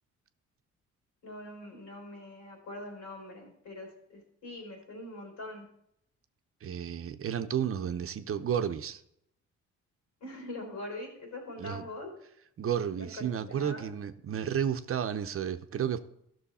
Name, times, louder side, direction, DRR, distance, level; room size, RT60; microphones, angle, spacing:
voice 1, 1.2-3.9 4.4-5.6 10.2-12.1 12.9-13.9, left 1 dB, 80° left, 3.8 m, -43 dB
voice 2, 6.6-9.0 11.6-11.9 12.6-16.0, right 8 dB, 45° right, 0.7 m, -32 dB
13.5 x 6.4 x 4.2 m
cardioid pair, 90°, 30 cm